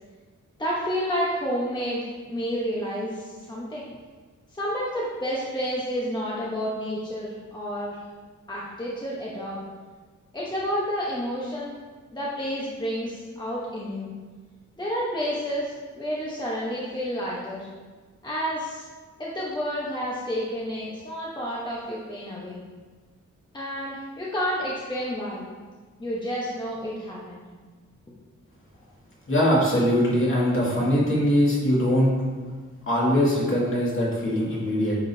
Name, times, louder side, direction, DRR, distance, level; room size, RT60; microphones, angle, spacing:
voice 1, 0.6-3.9 4.5-8.0 8.5-9.6 10.3-11.7 12.1-14.1 14.8-17.7 18.2-18.8 19.2-22.6 23.5-25.4 26.0-27.4, equal, 15° left, -6 dB, 1.0 m, -30 dB
voice 2, 29.3-32.1 32.9-35.0, equal, 40° left, -5 dB, 2.1 m, -22 dB
9.2 x 5.1 x 2.8 m, 1.4 s
wide cardioid pair, 125°, 31 cm